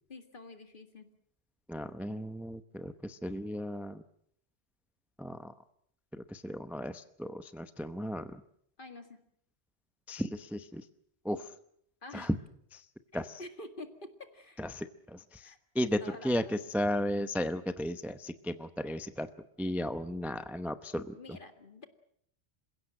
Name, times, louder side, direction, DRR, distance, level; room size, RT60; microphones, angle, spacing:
voice 1, 0.1-1.1 8.8-9.2 12.0-12.3 13.1-14.6 15.4-15.6 16.0-16.6 21.1-21.9, left 2 dB, 50° left, 7 dB, 2.1 m, -48 dB
voice 2, 1.7-4.0 5.2-5.5 6.1-8.4 10.1-10.8 11.2-11.5 12.1-12.4 12.7-12.8 13.1-13.4 14.6-19.3 19.6-21.2, equal, ahead, 10 dB, 0.7 m, -35 dB
27.5 x 16.5 x 7.7 m, 0.69 s
omnidirectional pair, 1.2 m